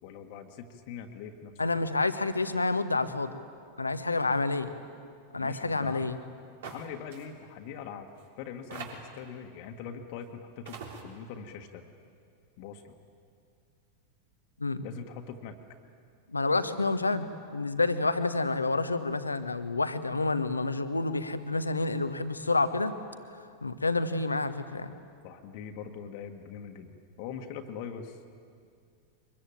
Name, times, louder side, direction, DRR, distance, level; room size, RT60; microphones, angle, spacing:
voice 1, 0.0-1.5 1.8-1.9 5.4-6.2 6.7-8.1 8.4-11.9 12.6-12.9 14.8-15.6 25.2-26.9 27.2-28.2, left 7 dB, 45° left, 5 dB, 1.7 m, -42 dB
voice 2, 1.6-3.3 3.8-4.7 5.3-6.2 14.6-14.8 16.3-22.9 23.4-24.9, left 3 dB, 80° left, 11 dB, 1.1 m, -29 dB
sound 1, 6.6-6.9 7.1-7.2 8.1-8.2 8.7-9.2 10.2-10.3 10.7-11.0, right 5 dB, 55° right, 3.6 m, -42 dB
23.5 x 21.5 x 9.0 m, 2.3 s
figure-of-eight pair, 90°, 0 cm